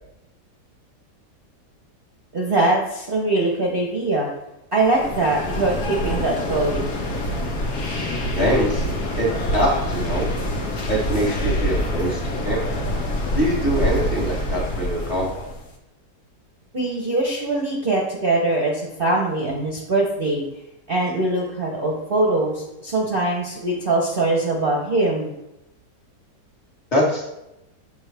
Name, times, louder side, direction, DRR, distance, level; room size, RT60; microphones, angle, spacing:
voice 1, 2.3-4.3 4.7-7.0 16.7-20.4 20.9-25.3, right 2 dB, 40° right, -2 dB, 0.9 m, -22 dB
sound 1, 4.8-15.7, left 1 dB, 70° left, 1.6 m, -26 dB
voice 2, 8.4-8.9 9.2-10.3 10.9-12.6 13.3-15.3 26.9-27.2, equal, 25° left, -5 dB, 1.7 m, -23 dB
7.1 x 6.2 x 3.4 m, 0.90 s
omnidirectional pair, 1.8 m